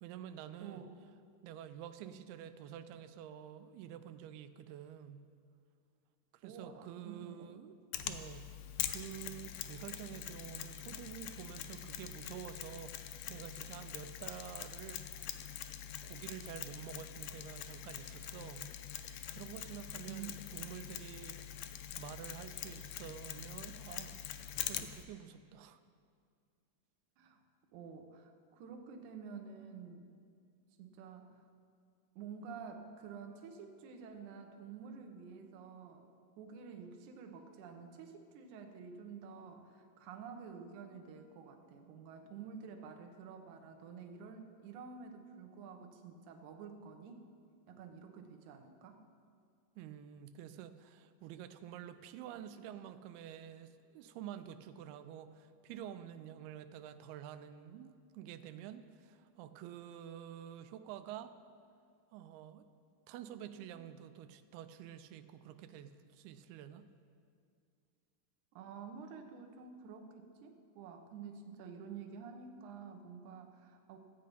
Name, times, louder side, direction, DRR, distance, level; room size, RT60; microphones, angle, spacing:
voice 1, 0.0-0.8 1.4-5.3 6.3-8.5 8.9-15.0 15.5-15.7 16.0-18.8 19.3-25.8 49.8-61.3 62.1-62.7 63.1-66.9, right 10 dB, 90° right, 10 dB, 2.5 m, -49 dB
voice 2, 0.6-1.0 6.4-7.5 20.1-20.3 27.2-27.4 27.7-30.1 30.8-31.5 32.2-36.1 36.4-47.2 47.7-49.0 68.6-74.0, right 6 dB, 70° right, 5 dB, 2.0 m, -50 dB
Mechanisms, 7.9-25.0, left 11 dB, 80° left, 2.0 m, -44 dB
14.5 x 8.5 x 5.3 m, 2.2 s
omnidirectional pair, 4.4 m